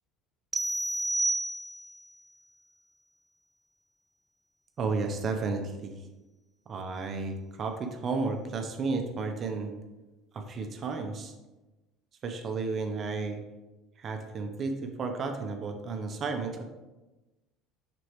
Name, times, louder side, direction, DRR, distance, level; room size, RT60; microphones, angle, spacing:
sound 1, 0.5-2.1, right 2 dB, 15° right, 0.3 m, -30 dB
voice 1, 4.8-6.1 6.7-9.8 10.3-11.3 12.2-13.4 14.0-16.6, right 4 dB, 40° right, 4 dB, 0.8 m, -33 dB
6.1 x 6.1 x 3.1 m, 1.1 s
hypercardioid pair, 70°, 0 cm